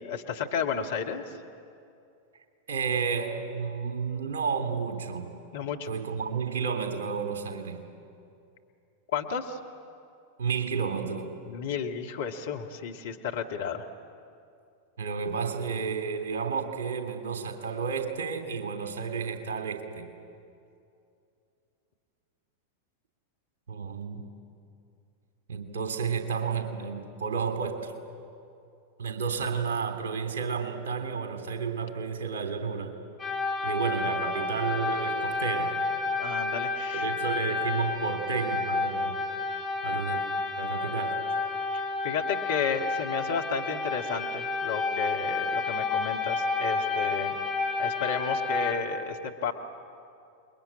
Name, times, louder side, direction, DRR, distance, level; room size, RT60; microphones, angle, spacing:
voice 1, 0.0-1.4 5.5-5.9 9.1-9.6 11.5-13.9 36.2-37.1 42.0-47.4 47.8-49.5, left 6 dB, 60° left, 3 dB, 2.1 m, -32 dB
voice 2, 2.7-5.3 5.9-7.8 10.4-11.3 15.0-20.1 23.7-24.3 25.5-27.9 29.0-32.9 33.6-35.8 36.9-39.1 39.8-40.2 40.6-41.2, right 6 dB, 60° right, 5 dB, 3.2 m, -31 dB
sound 1, 33.2-48.7, left 3 dB, 15° left, 3.2 m, -30 dB
29.0 x 22.0 x 8.9 m, 2.5 s
figure-of-eight pair, 90°, 0 cm